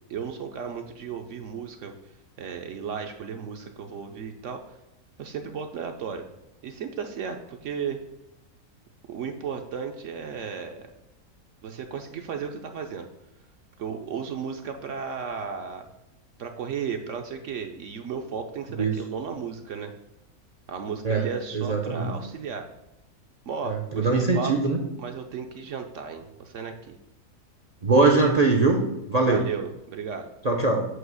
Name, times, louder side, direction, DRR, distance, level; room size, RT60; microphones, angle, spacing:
voice 1, 0.1-2.0 2.4-4.8 5.2-6.3 6.6-8.0 9.1-10.9 11.6-13.1 13.8-15.8 16.4-19.9 20.7-22.7 23.5-24.5 25.0-27.0 29.2-30.3, right 6 dB, 60° right, 5 dB, 0.9 m, -34 dB
voice 2, 21.5-22.1 23.6-24.8 27.8-29.4 30.4-30.9, right 3 dB, 45° right, 2 dB, 0.5 m, -22 dB
7.8 x 2.9 x 6.2 m, 0.93 s
omnidirectional pair, 1.6 m